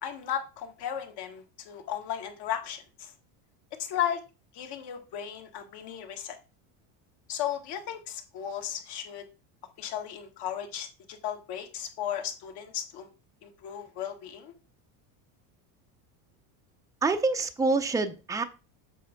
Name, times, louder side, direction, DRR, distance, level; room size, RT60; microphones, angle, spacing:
voice 1, 0.0-3.1 3.8-4.2 4.5-6.4 7.3-9.2 9.8-13.1 13.4-14.5, left 10 dB, 60° left, 4 dB, 1.9 m, -35 dB
voice 2, 17.0-18.4, right 3 dB, 5° right, 7 dB, 0.6 m, -26 dB
7.5 x 3.4 x 5.8 m, 0.30 s
supercardioid pair, 115°, 46 cm